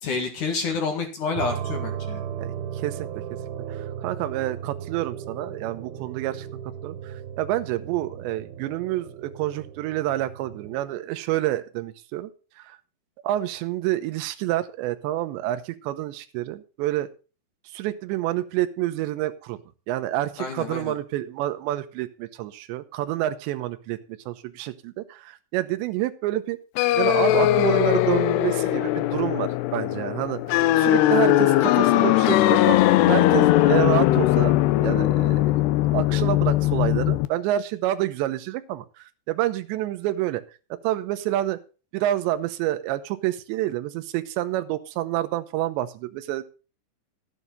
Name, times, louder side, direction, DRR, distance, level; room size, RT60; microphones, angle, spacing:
voice 1, 0.0-2.2 20.4-20.9, left 4 dB, 50° left, 3 dB, 2.8 m, -29 dB
sound 1, 1.4-10.9, right 8 dB, 60° right, 3.0 m, -36 dB
voice 2, 2.4-3.1 3.7-6.5 6.8-12.3 12.6-12.8 13.2-17.1 17.7-19.6 19.9-24.0 24.3-26.6 27.0-32.8 33.1-34.6 34.8-35.5 35.9-40.4 40.8-41.6 41.9-46.5, right 14 dB, 80° right, 10 dB, 3.0 m, -28 dB
sound 2, 26.8-37.3, left 15 dB, 80° left, 2.4 m, -20 dB
14.0 x 9.3 x 4.0 m, 0.34 s
omnidirectional pair, 5.6 m